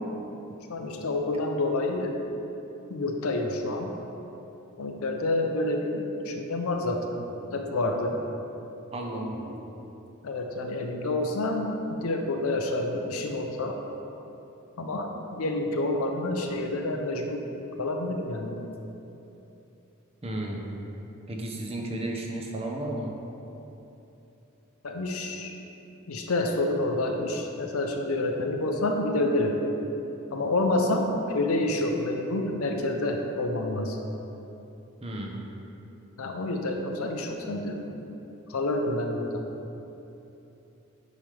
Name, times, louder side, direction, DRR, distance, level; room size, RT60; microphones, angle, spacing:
voice 1, 0.7-2.1 2.9-3.9 4.8-7.2 7.5-8.2 10.2-11.7 12.0-13.8 14.8-17.4 17.8-18.6 24.8-25.5 26.1-29.6 30.3-34.0 36.2-37.8 38.5-39.4, left 2 dB, 75° left, 3 dB, 0.7 m, -28 dB
voice 2, 8.9-9.7 20.2-20.8 21.3-23.1 35.0-35.5, right 1 dB, 30° right, 0 dB, 0.8 m, -33 dB
9.3 x 5.0 x 3.4 m, 3.0 s
head